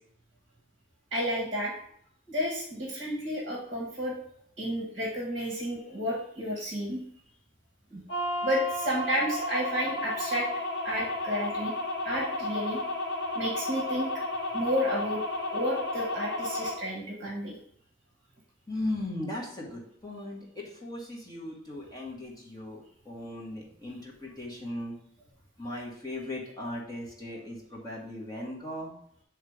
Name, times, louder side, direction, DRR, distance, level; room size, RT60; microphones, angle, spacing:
voice 1, 1.1-1.7 2.3-4.1 4.6-7.0 7.9-10.5 10.8-11.7 12.0-12.8 13.3-14.1 14.5-15.2 15.5-17.6, equal, 30° right, -2 dB, 1.6 m, -31 dB
sound 1, 8.1-16.7, left 1 dB, 55° left, 1.5 m, -32 dB
voice 2, 18.7-25.0 25.6-28.9, left 1 dB, 20° left, -3 dB, 1.5 m, -38 dB
8.2 x 3.3 x 4.9 m, 0.65 s
head